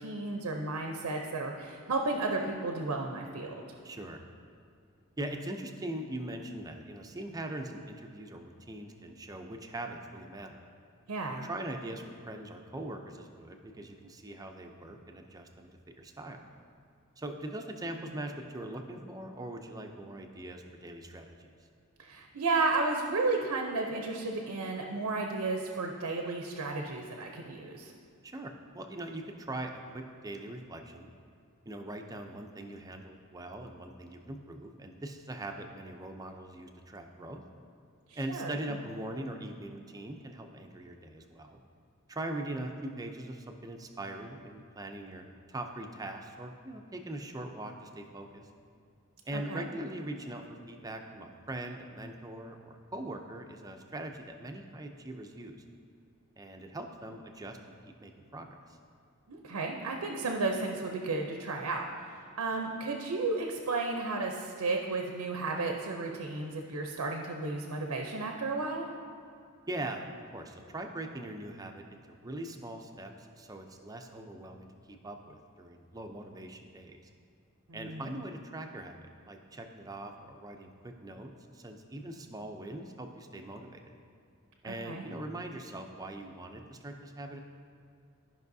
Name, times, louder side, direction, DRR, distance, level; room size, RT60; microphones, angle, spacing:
voice 1, 0.0-3.5 11.1-11.5 22.0-27.9 38.1-38.8 49.3-49.7 59.3-68.9 77.7-78.2 84.6-85.0, right 3 dB, 85° right, 2 dB, 0.6 m, -33 dB
voice 2, 3.8-4.2 5.2-10.6 11.3-15.7 16.0-16.4 17.2-21.5 28.2-31.1 31.7-37.4 38.2-41.6 42.1-48.5 49.3-55.6 56.4-57.6 57.9-58.5 69.7-70.1 70.3-77.0 77.7-83.9 84.6-87.4, right 1 dB, 15° right, 4 dB, 0.5 m, -41 dB
13.0 x 5.5 x 2.7 m, 2.4 s
head